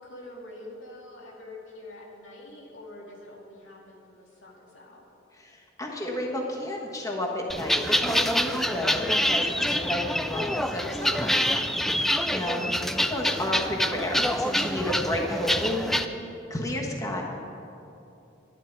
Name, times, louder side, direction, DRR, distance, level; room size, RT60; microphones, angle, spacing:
voice 1, 0.0-5.1 12.4-12.9, left 1 dB, 90° left, -2 dB, 2.2 m, -45 dB
voice 2, 5.4-11.5 11.9-12.6 13.0-16.0 16.5-17.2, left 1 dB, 20° left, -1 dB, 1.2 m, -31 dB
sound 1, 7.5-16.0, equal, ahead, 0.3 m, -26 dB
11.0 x 11.0 x 4.5 m, 2.8 s
head